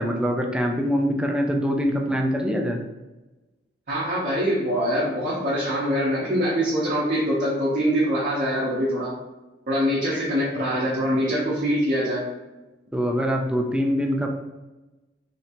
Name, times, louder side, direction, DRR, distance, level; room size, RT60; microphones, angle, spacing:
voice 1, 0.0-2.8 10.1-10.2 12.9-14.3, equal, 5° right, 2 dB, 0.3 m, -24 dB
voice 2, 3.9-9.1 9.7-12.2, equal, 45° right, -8 dB, 0.8 m, -24 dB
3.2 x 2.8 x 2.8 m, 1.1 s
head